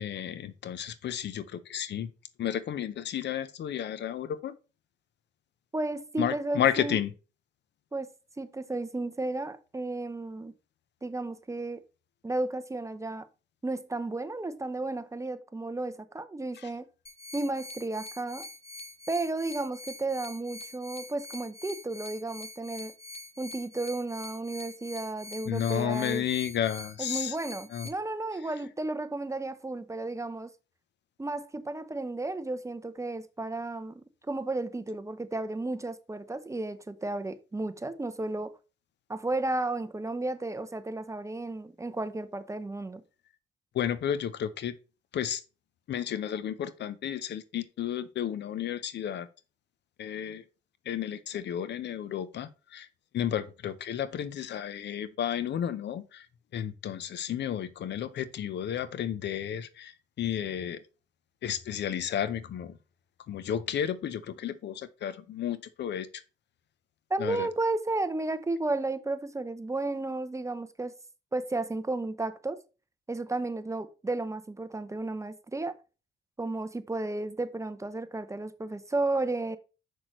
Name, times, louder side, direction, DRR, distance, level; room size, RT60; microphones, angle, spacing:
voice 1, 0.0-2.1 2.4-4.6 6.2-7.1 16.6-16.7 25.5-27.4 27.7-27.9 43.7-44.8 45.1-45.4 45.9-49.3 50.0-50.4 50.9-52.9 53.1-56.3 56.5-60.8 61.4-62.8 63.3-66.2 67.2-67.5, left 9 dB, 60° left, 0.6 m, -32 dB
voice 2, 5.7-7.0 7.9-10.5 11.0-11.8 12.2-13.3 13.6-16.9 17.3-18.5 19.1-22.9 23.4-26.2 27.0-30.5 31.2-38.5 39.1-43.0 67.1-70.9 71.3-72.6 73.1-75.8 76.4-79.6, right 2 dB, 15° right, 0.6 m, -33 dB
sound 1, 17.1-27.9, left 2 dB, 30° left, 1.2 m, -45 dB
6.4 x 5.9 x 3.0 m
cardioid pair, 90°, 20 cm